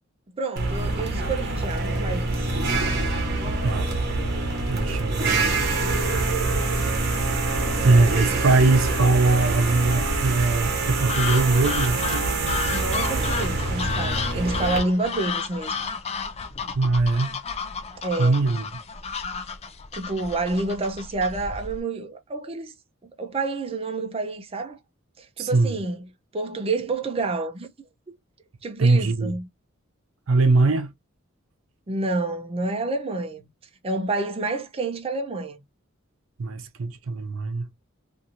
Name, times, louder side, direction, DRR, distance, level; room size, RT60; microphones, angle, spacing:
voice 1, 0.4-2.5 12.7-15.8 18.0-18.4 19.9-22.7 23.2-24.8 25.2-27.7 28.6-29.5 31.9-33.5 33.8-35.6, right 2 dB, 30° right, 0.5 m, -28 dB
sound 1, 0.6-14.8, right 2 dB, 55° right, 0.9 m, -25 dB
voice 2, 3.5-4.2 4.7-5.5 7.8-12.3 16.7-17.4 18.2-18.6 25.4-25.8 28.8-29.3 30.3-30.9 36.4-37.6, right 3 dB, 90° right, 0.6 m, -21 dB
sound 2, 11.1-21.8, left 5 dB, 30° left, 0.4 m, -32 dB
2.6 x 2.5 x 2.8 m
head